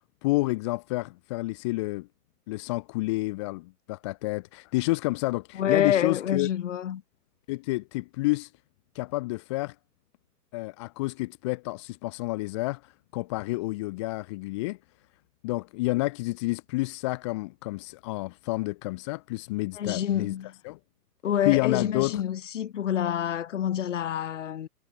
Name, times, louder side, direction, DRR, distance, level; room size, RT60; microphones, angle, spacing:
voice 1, 0.2-2.1 2.5-6.5 7.5-8.5 8.9-9.7 10.5-14.8 15.4-20.3 20.6-20.8 21.4-22.2, left 21 dB, 20° left, 1.1 m, -29 dB
voice 2, 5.5-7.0 19.8-20.5 21.2-24.7, left 10 dB, 45° left, 4.4 m, -27 dB
hypercardioid pair, 150°, 49 cm